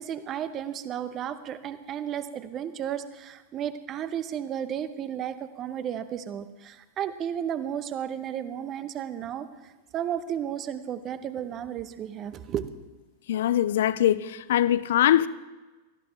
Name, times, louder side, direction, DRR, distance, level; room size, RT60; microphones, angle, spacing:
voice 1, 0.0-9.5 9.9-12.6, right 9 dB, 30° right, 0.8 m, -33 dB
voice 2, 13.3-15.3, left 11 dB, 60° left, 0.5 m, -22 dB
17.5 x 13.5 x 3.4 m
figure-of-eight pair, 90°, 0 cm